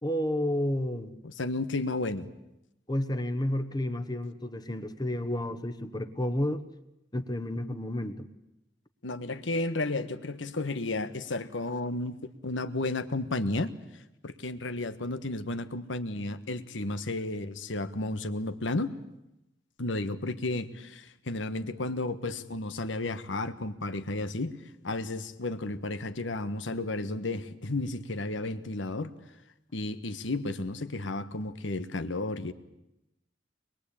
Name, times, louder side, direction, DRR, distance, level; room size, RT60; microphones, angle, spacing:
voice 1, 0.0-1.2 2.9-6.6 7.1-8.3, left 1 dB, 20° left, 9 dB, 1.2 m, -31 dB
voice 2, 1.2-2.3 9.0-12.2 12.4-13.7 14.2-19.0 19.8-29.1 29.7-32.5, left 2 dB, 85° left, 11 dB, 1.4 m, -33 dB
24.0 x 22.0 x 8.6 m, 0.89 s
head